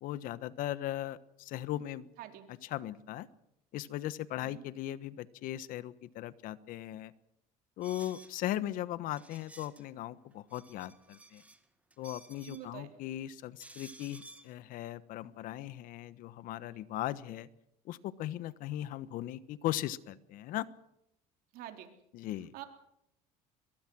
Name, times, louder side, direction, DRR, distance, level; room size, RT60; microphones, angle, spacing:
voice 1, 0.0-2.1 2.5-3.3 3.7-7.1 7.8-11.4 12.0-17.5 17.9-20.7 22.1-22.5, left 13 dB, 65° left, 16 dB, 1.2 m, -38 dB
voice 2, 2.2-2.5 4.4-4.6 12.4-12.9 21.5-21.9 22.5-22.7, right 12 dB, 70° right, 5 dB, 3.6 m, -46 dB
sound 1, 7.8-8.3 9.2-9.8 10.3-11.6 11.9-12.7 13.6-14.5, right 2 dB, 10° right, 2.2 m, -54 dB
22.5 x 22.5 x 6.2 m, 0.79 s
supercardioid pair, 105°, 16 cm